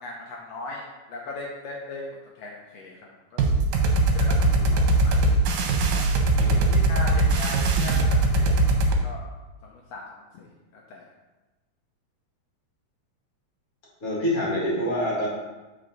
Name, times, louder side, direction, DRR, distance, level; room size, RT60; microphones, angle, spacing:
voice 1, 0.0-2.1 2.4-3.4 3.8-5.4 5.9-6.3 6.7-9.2 9.6-10.0 10.3-11.0, left 2 dB, 80° left, -2 dB, 1.5 m, -39 dB
sound 1, 3.4-9.0, right 2 dB, 80° right, 2.4 m, -21 dB
voice 2, 6.4-6.9 14.0-15.3, equal, 30° left, -5 dB, 1.8 m, -27 dB
7.8 x 4.8 x 3.9 m, 1.1 s
omnidirectional pair, 3.9 m